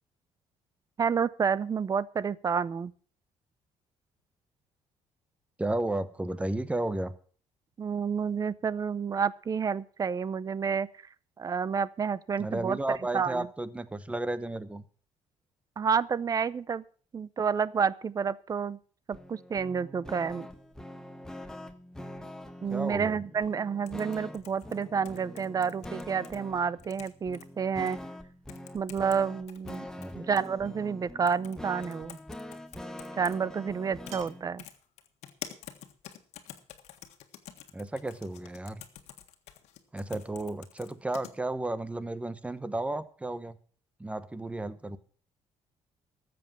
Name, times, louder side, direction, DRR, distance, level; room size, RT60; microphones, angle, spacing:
voice 1, 1.0-2.9 7.8-10.9 11.4-12.8 13.1-13.5 15.8-16.8 17.1-18.8 19.1-20.5 22.6-28.0 28.7-29.9 30.1-32.2 33.2-34.6, right 6 dB, 35° right, 20 dB, 0.6 m, -29 dB
voice 2, 5.6-7.1 12.4-14.8 22.7-23.2 30.0-30.2 37.7-38.8 39.9-43.6 44.0-45.0, right 2 dB, 10° right, 15 dB, 1.0 m, -33 dB
sound 1, 19.1-34.4, left 1 dB, 5° left, 1.4 m, -44 dB
sound 2, 23.9-26.4 26.8-27.5 27.9-28.0 28.5-29.2 29.5-30.5 31.3-31.6 31.8-33.4 34.1-34.3 34.6-41.3, left 11 dB, 80° left, 1.6 m, -47 dB
sound 3, 30.6-31.0 32.5-32.6 34.1-34.6, right 7 dB, 70° right, 2.8 m, -50 dB
13.5 x 7.8 x 7.3 m, 0.43 s
cardioid pair, 110°, 11 cm